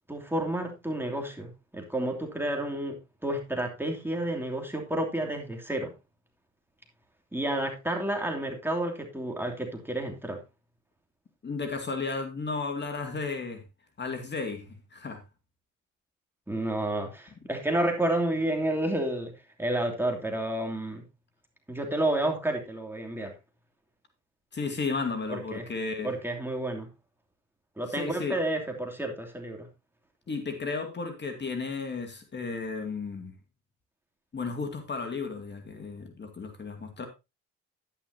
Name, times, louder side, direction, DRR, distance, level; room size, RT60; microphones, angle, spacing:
voice 1, 0.1-5.9 7.3-10.4 16.5-19.3 19.6-21.0 21.7-23.3 25.3-25.7 26.0-26.9 27.8-29.7, right 1 dB, 5° right, 2 dB, 2.8 m, -30 dB
voice 2, 11.4-13.6 14.0-15.2 24.5-26.1 27.9-28.4 30.3-33.3 34.3-37.1, left 4 dB, 35° left, 6 dB, 2.2 m, -34 dB
11.0 x 10.0 x 2.7 m, 0.24 s
cardioid pair, 90°, 30 cm